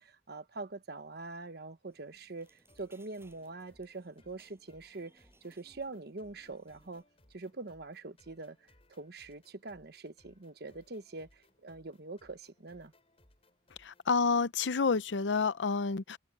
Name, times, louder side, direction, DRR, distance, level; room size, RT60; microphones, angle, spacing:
voice 1, 0.0-7.0 7.3-12.9, right 3 dB, 60° right, 1.2 m, -44 dB
sound 1, 1.8-7.0, right 2 dB, 15° right, 7.2 m, -67 dB
sound 2, 2.4-14.1, left 1 dB, 35° left, 5.4 m, -67 dB
voice 2, 13.8-16.2, left 4 dB, 80° left, 0.7 m, -29 dB
head